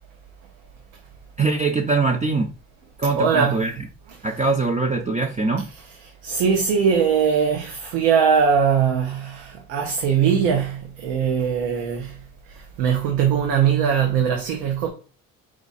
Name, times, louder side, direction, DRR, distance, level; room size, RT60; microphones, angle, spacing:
voice 1, 1.4-2.5 3.0-3.7 4.2-5.7, right 3 dB, 20° right, 0.6 m, -22 dB
voice 2, 3.2-3.7 6.2-12.1 12.8-14.9, right 7 dB, 85° right, 0.9 m, -20 dB
4.8 x 2.4 x 4.0 m
supercardioid pair, 80°, 35 cm